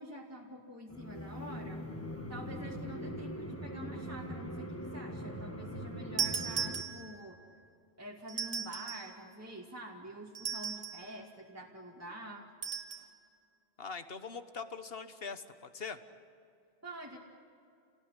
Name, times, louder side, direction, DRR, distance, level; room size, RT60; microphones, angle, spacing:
voice 1, 0.0-1.8 2.3-7.4 8.0-12.5 12.9-13.1 16.8-17.2, right 1 dB, 15° right, -2 dB, 2.2 m, -47 dB
sound 1, 0.9-6.8, equal, 10° left, 1.7 m, -41 dB
sound 2, 6.2-7.3 8.3-9.1 10.4-11.1 12.6-13.1, right 7 dB, 70° right, 2.0 m, -37 dB
voice 2, 13.8-16.0, left 5 dB, 60° left, 10 dB, 1.5 m, -42 dB
29.5 x 19.0 x 9.9 m, 2.5 s
omnidirectional pair, 1.1 m